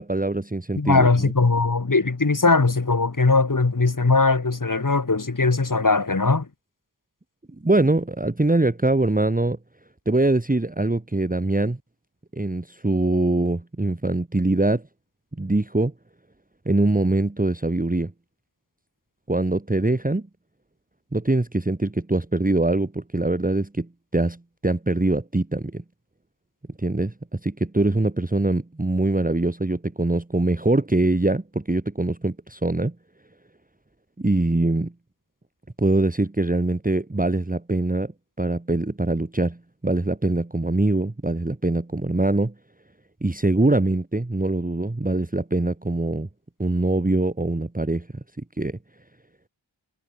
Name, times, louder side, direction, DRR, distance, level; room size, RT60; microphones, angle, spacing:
voice 1, 0.0-1.3 7.6-9.6 10.1-11.8 12.3-14.8 15.4-15.9 16.7-18.1 19.3-20.3 21.1-25.8 26.8-33.0 34.2-34.9 35.8-38.1 38.4-42.5 43.2-46.3 46.6-48.2 48.6-48.8, right 2 dB, 20° right, 1.7 m, -23 dB
voice 2, 0.8-6.5, left 3 dB, 45° left, 3.0 m, -20 dB
wide cardioid pair, 75°, 45 cm